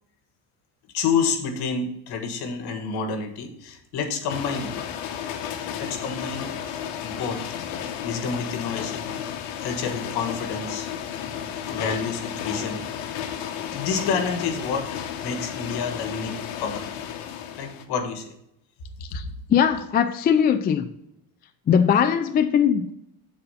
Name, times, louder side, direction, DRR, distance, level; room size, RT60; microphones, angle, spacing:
voice 1, 0.9-4.7 5.8-6.5 7.0-7.4 8.0-9.1 9.6-10.9 11.7-12.8 13.7-16.9 17.5-18.3, left 5 dB, 60° left, 1.5 m, -29 dB
sound 1, 4.3-17.8, left 9 dB, 80° left, 1.1 m, -33 dB
voice 2, 19.5-20.8 21.7-22.9, left 8 dB, 25° left, 0.3 m, -20 dB
7.8 x 4.2 x 5.5 m
cardioid pair, 130°, 43 cm